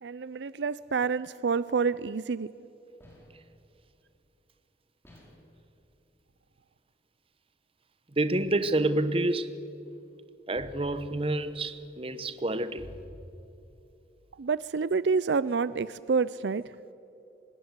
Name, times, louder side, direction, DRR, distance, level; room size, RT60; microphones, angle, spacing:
voice 1, 0.0-2.5 14.4-16.7, right 5 dB, 75° right, 0.5 m, -28 dB
sound 1, 3.0-3.6 5.0-5.6 8.4-9.0 10.5-14.0, equal, 15° left, 5.4 m, -51 dB
voice 2, 8.2-9.5 10.5-12.9, right 2 dB, 30° right, 1.0 m, -28 dB
25.0 x 20.0 x 8.2 m
head